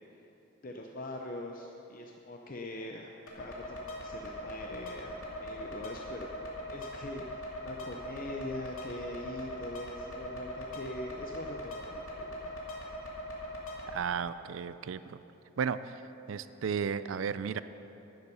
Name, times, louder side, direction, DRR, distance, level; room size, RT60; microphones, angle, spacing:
voice 1, 0.6-5.1 5.4-12.5, left 1 dB, 40° left, 2 dB, 0.6 m, -43 dB
sound 1, 3.3-13.9, equal, 90° left, 2.2 m, -41 dB
voice 2, 13.9-15.2 15.6-16.0 16.3-17.6, right 6 dB, 70° right, 14 dB, 0.4 m, -34 dB
11.5 x 9.7 x 5.6 m, 3.0 s
head